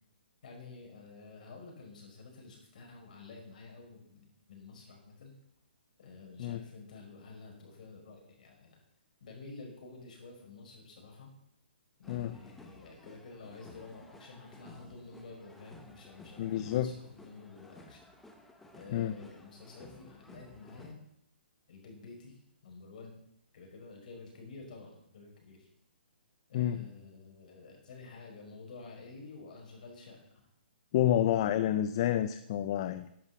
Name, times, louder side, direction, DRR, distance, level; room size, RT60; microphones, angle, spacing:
voice 1, 0.4-5.3 6.0-8.8 9.2-11.3 12.0-18.0 18.7-21.0 21.7-23.2 23.5-25.7 26.5-30.4, left 3 dB, 45° left, 1 dB, 5.4 m, -50 dB
sound 1, 12.0-20.9, left 1 dB, 5° left, 1.0 m, -55 dB
voice 2, 16.4-16.9 18.9-19.1 26.5-26.8 30.9-33.1, left 11 dB, 30° left, 12 dB, 0.5 m, -29 dB
12.0 x 11.0 x 7.0 m, 0.76 s
hypercardioid pair, 170°, 6 cm